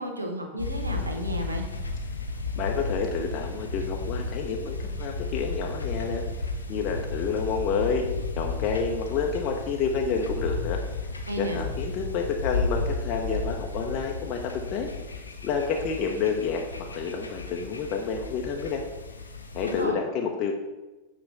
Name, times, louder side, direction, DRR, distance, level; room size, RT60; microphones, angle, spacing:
voice 1, 0.0-1.6 11.3-11.6 19.6-20.0, equal, 80° right, 3 dB, 1.0 m, -32 dB
sound 1, 0.6-19.8, left 3 dB, 80° left, 0.7 m, -33 dB
voice 2, 2.6-6.2 6.7-8.1 8.4-10.8 11.4-14.9 15.4-18.8 19.5-20.5, left 5 dB, 35° left, 1 dB, 0.7 m, -29 dB
8.7 x 3.3 x 5.4 m, 1.1 s
figure-of-eight pair, 90°, 0 cm